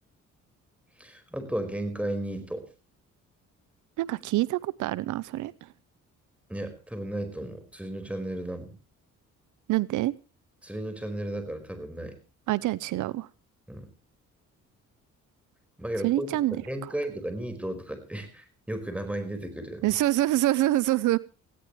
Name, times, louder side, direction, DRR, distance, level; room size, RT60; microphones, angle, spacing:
voice 1, 1.0-2.7 6.5-8.7 10.6-12.2 13.7-13.9 15.8-19.8, right 1 dB, 5° right, 8 dB, 5.1 m, -34 dB
voice 2, 4.0-5.7 9.7-10.1 12.5-13.3 16.0-16.6 16.8-16.9 19.8-21.2, right 16 dB, 80° right, 20 dB, 0.7 m, -26 dB
19.0 x 16.5 x 3.2 m, 0.34 s
cardioid pair, 90°, 30 cm